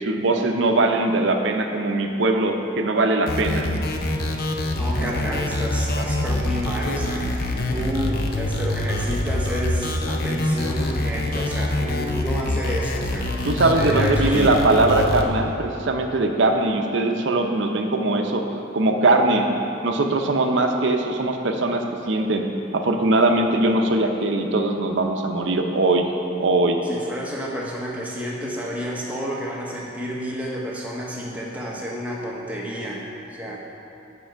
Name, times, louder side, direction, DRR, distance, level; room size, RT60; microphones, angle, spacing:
voice 1, 0.0-3.7 13.4-18.4 18.7-19.5 19.8-22.5 22.7-26.1 26.4-26.8, right 2 dB, 65° right, 4 dB, 0.6 m, -21 dB
sound 1, 3.3-15.2, left 1 dB, 50° left, 0.6 m, -25 dB
voice 2, 4.7-14.6 26.8-33.1 33.3-33.6, equal, 5° right, -4 dB, 1.0 m, -30 dB
8.8 x 5.3 x 4.6 m, 2.8 s
head